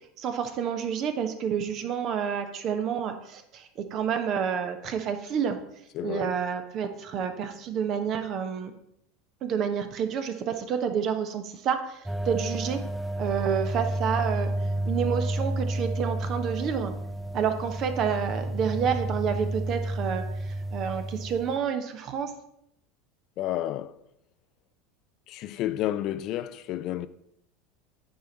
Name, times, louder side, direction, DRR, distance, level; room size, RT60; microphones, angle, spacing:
voice 1, 0.2-5.6 6.0-8.7 9.4-12.8 13.2-14.5 14.9-16.9 17.3-22.3, right 7 dB, 45° right, 1.1 m, -29 dB
voice 2, 5.9-6.3 23.4-24.0 25.3-27.1, left 13 dB, 50° left, 0.4 m, -31 dB
sound 1, 12.1-21.6, right 1 dB, 5° right, 0.4 m, -31 dB
9.2 x 4.5 x 5.3 m
hypercardioid pair, 85°, 0 cm